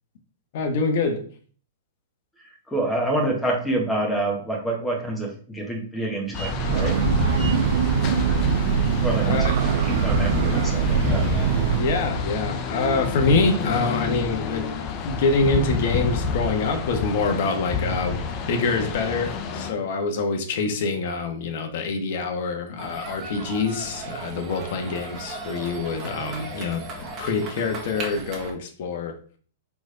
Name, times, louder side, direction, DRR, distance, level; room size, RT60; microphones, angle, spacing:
voice 1, 0.5-1.3 9.2-9.5 11.8-14.7 15.0-18.2 18.5-29.2, left 3 dB, 60° left, 5 dB, 1.4 m, -25 dB
voice 2, 2.7-7.0 9.0-9.5 9.9-11.3, right 1 dB, 5° left, 0 dB, 1.9 m, -27 dB
sound 1, 6.3-19.7, left 5 dB, 35° left, 0.9 m, -28 dB
Breathing / Train, 6.4-12.1, right 8 dB, 60° right, 0.4 m, -23 dB
sound 2, 22.8-28.5, right 3 dB, 30° right, 1.8 m, -36 dB
4.6 x 4.2 x 5.1 m, 0.43 s
hypercardioid pair, 125°, 0 cm